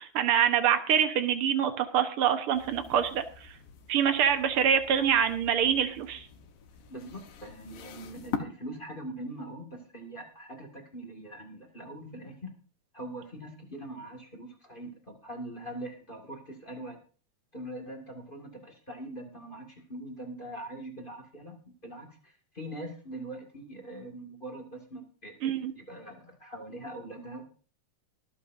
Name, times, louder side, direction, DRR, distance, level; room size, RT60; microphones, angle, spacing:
voice 1, 0.0-3.5 3.9-6.3 25.4-25.7, right 8 dB, 60° right, 8 dB, 1.6 m, -25 dB
sound 1, 2.5-8.4, left 8 dB, 85° left, 2.8 m, -43 dB
voice 2, 6.9-12.5 12.9-17.0 17.5-21.5 21.8-27.4, right 1 dB, 20° left, 2 dB, 1.7 m, -42 dB
24.0 x 8.7 x 2.6 m, 0.40 s
omnidirectional pair, 3.6 m